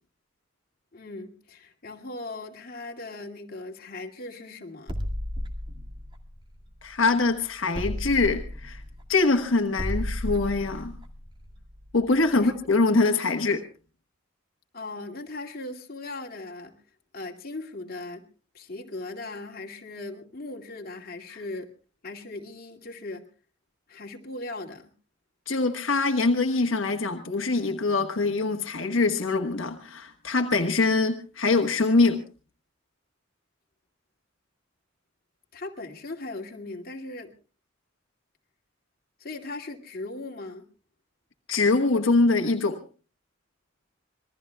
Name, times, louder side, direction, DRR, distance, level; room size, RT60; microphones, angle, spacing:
voice 1, 0.9-4.9 12.3-12.5 14.7-16.8 17.1-18.3 18.5-21.7 22.0-23.2 23.9-24.9 35.5-37.3 39.2-40.6, left 2 dB, 50° left, 2.3 m, -38 dB
sound 1, 4.9-7.2 7.7-12.4, equal, 25° right, 2.2 m, -34 dB
voice 2, 6.8-8.8 9.1-10.9 11.9-13.7 21.3-21.4 25.5-32.2 41.5-42.8, left 3 dB, 85° left, 1.3 m, -23 dB
26.5 x 21.0 x 2.3 m
head